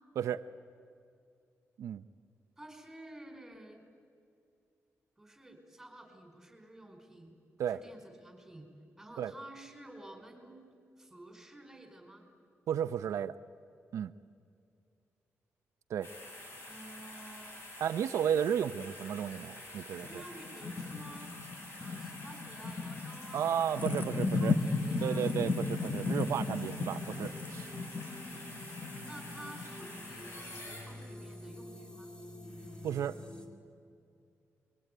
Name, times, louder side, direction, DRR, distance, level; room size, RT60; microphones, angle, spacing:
voice 1, 2.6-3.8 5.2-8.7 9.0-12.3 16.7-17.7 20.1-21.3 21.8-23.6 24.1-25.3 28.0-28.4 29.0-32.1, right 1 dB, 5° right, 3 dB, 5.2 m, -51 dB
voice 2, 12.7-13.4 13.9-14.1 15.9-16.1 17.8-20.2 23.3-24.6 25.0-27.7 32.8-33.2, right 9 dB, 85° right, 10 dB, 0.7 m, -33 dB
sound 1, 16.0-31.3 31.8-31.9, left 1 dB, 55° left, 7.5 m, -48 dB
sound 2, 20.0-30.1, left 3 dB, 30° left, 1.1 m, -35 dB
sound 3, 24.6-33.5, left 1 dB, 15° left, 2.7 m, -49 dB
27.0 x 23.0 x 9.4 m, 2.4 s
wide cardioid pair, 145°, 5 cm